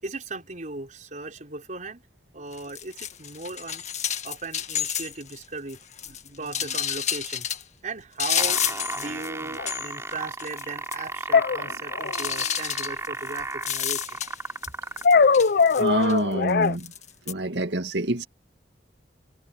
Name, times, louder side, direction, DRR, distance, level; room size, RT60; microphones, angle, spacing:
voice 1, 0.0-2.0 2.3-7.5 7.8-14.0, right 3 dB, 45° right, 5.0 m, -37 dB
sound 1, 2.5-5.4 5.7-7.6 8.2-9.3 9.5-10.1 10.4-10.6 10.9-11.0 12.1-14.7 15.0-16.2 16.8-17.3, left 9 dB, 40° left, 1.6 m, -30 dB
sound 2, 8.2-15.2 16.0-16.1, right 3 dB, 15° right, 2.8 m, -34 dB
sound 3, 9.6-9.7 11.3-12.3 15.0-16.7, left 5 dB, 60° left, 0.5 m, -20 dB
voice 2, 15.8-16.9 17.3-18.3, right 1 dB, 85° right, 2.1 m, -26 dB
head